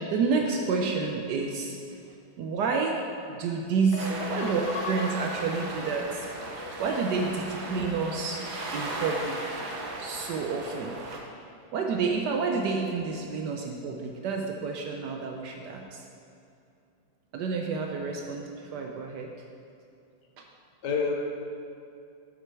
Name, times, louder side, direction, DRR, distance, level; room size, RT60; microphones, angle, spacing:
voice 1, 0.0-1.8 2.4-3.0 3.3-4.6 4.9-6.3 6.8-8.4 8.7-9.6 10.0-10.9 11.7-16.0 17.3-19.3 20.4-20.5, right 4 dB, 75° right, 2 dB, 1.0 m, -29 dB
voice 2, 3.9-5.1 6.5-7.0 20.8-21.1, left 5 dB, 60° left, 0 dB, 1.3 m, -33 dB
sound 1, 4.0-11.2, right 2 dB, 60° right, 1.2 m, -37 dB
6.8 x 6.0 x 4.6 m, 2.5 s
omnidirectional pair, 2.2 m